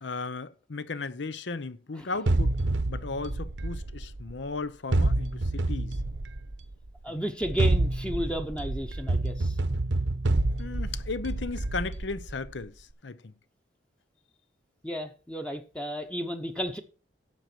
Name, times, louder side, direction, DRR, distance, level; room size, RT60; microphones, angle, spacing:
voice 1, 0.0-2.6 2.9-6.0 7.1-7.2 10.6-13.3, left 3 dB, 80° left, 0.8 m, -36 dB
sound 1, 2.3-4.4 4.9-6.7 7.4-12.5, right 2 dB, 80° right, 0.9 m, -28 dB
voice 2, 7.0-9.5 14.8-16.8, equal, 5° left, 0.9 m, -33 dB
12.0 x 7.6 x 4.5 m
head